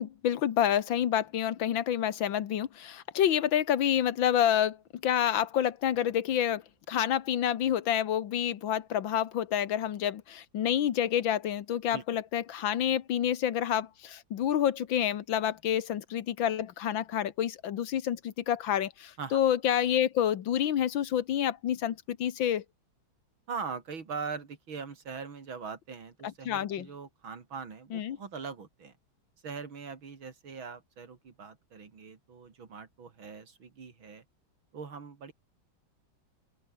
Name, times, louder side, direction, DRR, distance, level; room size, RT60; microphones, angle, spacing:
voice 1, 0.0-4.8 5.0-6.6 6.9-22.6 26.5-26.9 27.9-28.2, left 10 dB, 75° left, 1.9 m, -28 dB
voice 2, 23.5-28.9 29.4-34.2 34.7-35.3, right 5 dB, 85° right, 3.7 m, -41 dB
open air
omnidirectional pair, 2.1 m